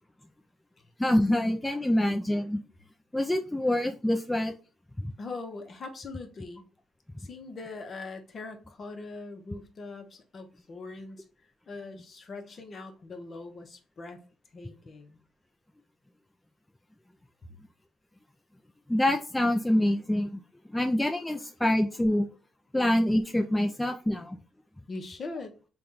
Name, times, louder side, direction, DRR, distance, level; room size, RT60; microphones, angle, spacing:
voice 1, 1.0-2.6 3.1-4.5 5.0-5.1 18.9-20.4 20.7-22.3 22.7-24.4, left 1 dB, 10° left, 4 dB, 0.4 m, -26 dB
voice 2, 5.2-6.6 7.2-11.2 11.7-14.2 14.5-15.2 24.9-25.6, left 3 dB, 45° left, 6 dB, 0.8 m, -41 dB
3.4 x 2.3 x 3.9 m, 0.35 s
cardioid pair, 90°, 0 cm